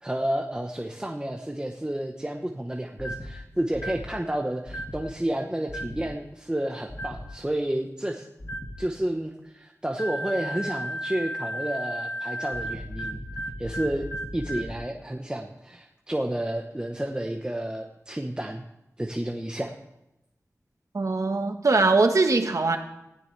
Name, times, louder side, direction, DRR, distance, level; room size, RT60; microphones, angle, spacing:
voice 1, 0.0-8.3 8.8-13.2 13.6-18.6 19.0-19.7, right 1 dB, 15° right, 2 dB, 1.1 m, -31 dB
sound 1, 3.0-3.3 3.7-4.1 4.7-5.0 5.7-6.1 6.9-7.3 8.4-8.8 10.0-14.8, equal, 40° left, 2.0 m, -34 dB
voice 2, 20.9-22.8, right 3 dB, 70° right, 5 dB, 1.4 m, -21 dB
19.0 x 15.5 x 3.4 m, 0.89 s
wide cardioid pair, 70°, 6 cm